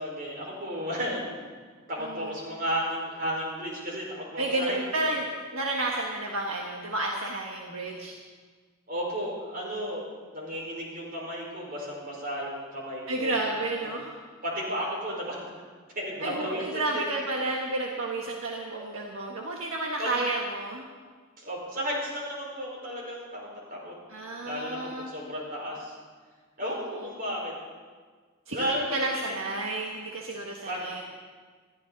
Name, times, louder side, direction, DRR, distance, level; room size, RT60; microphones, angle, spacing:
voice 1, 0.0-1.4 1.9-4.8 8.9-10.0 10.3-13.3 13.8-13.9 14.4-15.4 15.9-17.0 20.0-20.1 21.4-23.4 23.7-23.9 24.4-25.9 26.6-27.5 28.5-29.4 30.7-31.0, equal, 45° right, -2 dB, 5.1 m, -33 dB
voice 2, 2.0-2.4 4.4-8.1 13.1-14.2 16.2-20.9 24.1-25.1 26.7-27.1 28.5-31.0, right 2 dB, 70° right, -1 dB, 1.5 m, -31 dB
21.0 x 14.5 x 4.1 m, 1.5 s
head